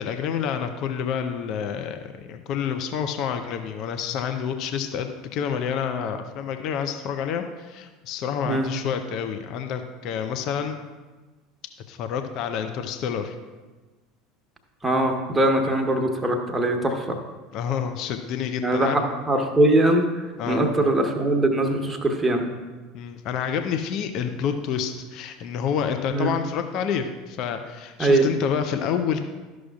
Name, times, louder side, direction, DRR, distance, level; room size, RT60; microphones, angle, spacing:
voice 1, 0.0-10.8 11.9-13.4 17.5-19.0 20.4-20.6 22.9-29.2, left 7 dB, 50° left, 7 dB, 0.5 m, -28 dB
voice 2, 14.8-17.2 18.6-22.4 26.1-26.3 28.0-28.3, right 1 dB, 15° right, 3 dB, 1.1 m, -22 dB
12.5 x 6.2 x 2.4 m, 1.3 s
figure-of-eight pair, 70°, 0 cm